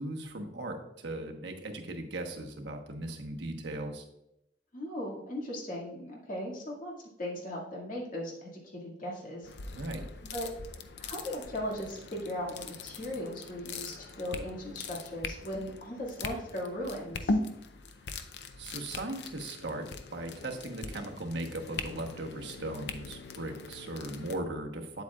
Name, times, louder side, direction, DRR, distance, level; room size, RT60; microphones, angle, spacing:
voice 1, 0.0-4.0 9.8-10.1 18.6-25.0, right 1 dB, 75° right, 2 dB, 1.1 m, -38 dB
voice 2, 4.7-6.9 7.2-9.8 10.3-10.5 11.0-17.4, equal, 50° left, -3 dB, 2.1 m, -38 dB
sound 1, 9.4-24.4, left 3 dB, 70° left, 0.6 m, -40 dB
8.4 x 8.0 x 2.4 m, 0.83 s
head